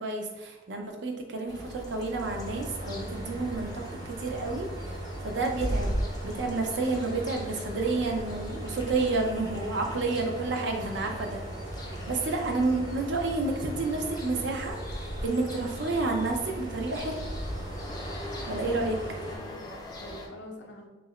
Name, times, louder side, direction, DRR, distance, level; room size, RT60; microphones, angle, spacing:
voice 1, 0.0-3.7 4.1-5.9 6.2-11.4 11.9-17.2 18.5-19.0, right 3 dB, 70° right, 2 dB, 0.5 m, -30 dB
sound 1, 1.5-20.3, equal, 20° left, 0.3 m, -39 dB
sound 2, 2.2-19.4, right 1 dB, 25° right, 0.6 m, -40 dB
voice 2, 18.7-20.9, left 1 dB, 70° left, 1 dB, 0.5 m, -46 dB
2.7 x 2.5 x 3.1 m, 1.1 s
head